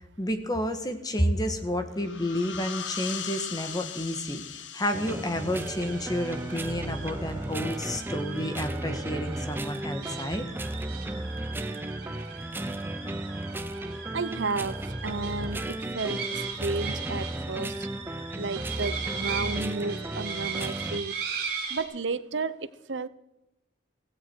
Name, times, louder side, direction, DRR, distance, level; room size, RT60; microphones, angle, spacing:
voice 1, 0.2-10.4, equal, 20° left, 7 dB, 1.6 m, -30 dB
sound 1, 1.9-7.3, left 8 dB, 85° left, 1.3 m, -40 dB
sound 2, 4.9-21.0, right 1 dB, 10° right, 0.6 m, -35 dB
sound 3, 5.5-21.8, right 6 dB, 55° right, 5.0 m, -39 dB
voice 2, 14.1-17.9 18.4-21.1 21.7-23.1, right 3 dB, 80° right, 15 dB, 0.8 m, -33 dB
16.5 x 16.0 x 4.7 m, 0.92 s
head